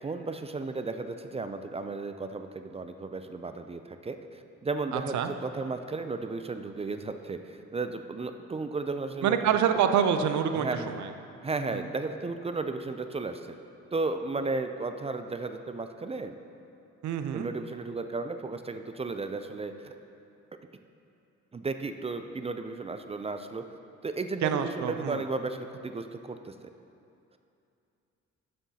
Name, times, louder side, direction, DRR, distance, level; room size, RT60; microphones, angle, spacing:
voice 1, 0.0-9.4 10.6-10.9 11.4-13.6 13.9-16.3 17.3-19.9 21.5-23.8 24.0-26.7, right 3 dB, 20° right, 8 dB, 0.4 m, -34 dB
voice 2, 4.9-5.3 9.2-11.1 11.7-11.8 17.0-17.5 24.4-25.2, right 8 dB, 70° right, 8 dB, 0.6 m, -27 dB
12.0 x 7.7 x 2.8 m, 2.6 s
cardioid pair, 90°, 30 cm